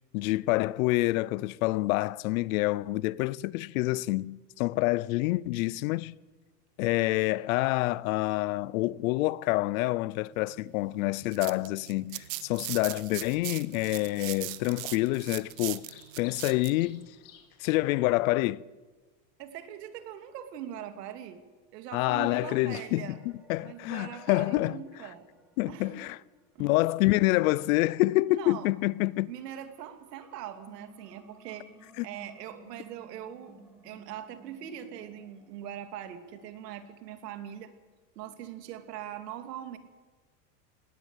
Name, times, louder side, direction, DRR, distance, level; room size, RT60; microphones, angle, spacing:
voice 1, 0.1-6.1 6.8-15.9 16.2-17.1 17.6-18.6 21.9-23.2 23.5-24.8 25.6-26.2 26.6-29.3 32.0-32.1, left 19 dB, 60° left, 0.6 m, -27 dB
sound 1, 11.1-16.7, right 20 dB, 55° right, 1.0 m, -39 dB
Bird vocalization bird call bird song, 12.2-17.5, left 9 dB, 40° left, 3.9 m, -58 dB
voice 2, 19.4-21.4 21.7-23.2 23.6-25.3 25.7-26.1 26.5-26.8 28.3-28.7 29.3-31.7 32.0-33.6 33.8-37.7 38.2-39.8, right 10 dB, 85° right, 2.7 m, -42 dB
sound 2, 22.5-28.6 29.0-37.1, right 2 dB, ahead, 2.4 m, -59 dB
19.0 x 18.0 x 8.2 m
supercardioid pair, 155°, 47 cm